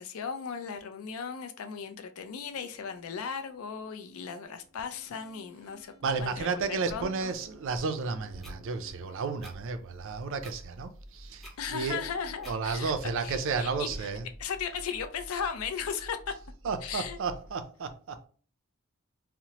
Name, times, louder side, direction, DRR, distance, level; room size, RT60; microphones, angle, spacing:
voice 1, 0.0-5.9 6.2-7.3 11.6-12.9 13.2-13.9 14.4-16.3 16.8-17.2, left 6 dB, 70° left, 0.4 m, -36 dB
sound 1, 2.2-17.5, equal, 30° right, 0.7 m, -51 dB
voice 2, 6.0-12.0 12.4-14.3 16.6-18.3, right 4 dB, 60° right, 0.4 m, -32 dB
sound 2, 8.4-8.6 9.4-9.6 10.4-10.6 11.4-11.6 12.4-12.6, equal, ahead, 0.5 m, -49 dB
2.8 x 2.0 x 2.8 m
head